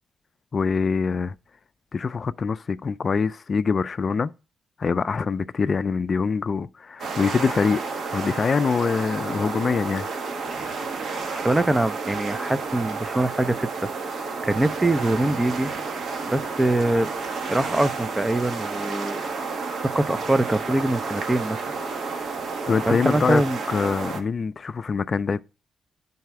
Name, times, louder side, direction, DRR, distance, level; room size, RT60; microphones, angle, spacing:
voice 1, 0.5-1.3 1.9-4.3 4.8-7.8 8.1-10.1 22.7-23.4 23.7-25.4, left 5 dB, 45° left, 0.3 m, -24 dB
sound 1, 7.0-24.2, right 4 dB, 70° right, 1.3 m, -31 dB
voice 2, 11.3-13.7 14.0-15.7 16.3-17.1 17.4-19.2 19.7-21.6 22.9-23.6, right 1 dB, 15° right, 0.4 m, -23 dB
9.4 x 4.1 x 4.7 m
cardioid pair, 90°, 0 cm